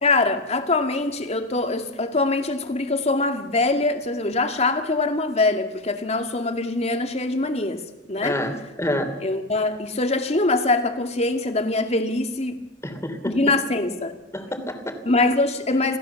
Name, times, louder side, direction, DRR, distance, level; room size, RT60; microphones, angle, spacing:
voice 1, 0.0-8.4 9.2-12.6 13.2-14.2 15.1-16.0, left 2 dB, 40° left, 6 dB, 2.2 m, -23 dB
voice 2, 8.2-9.1 12.8-13.4 14.3-15.0, left 1 dB, 15° left, 6 dB, 3.1 m, -28 dB
28.0 x 17.0 x 7.1 m, 1.0 s
head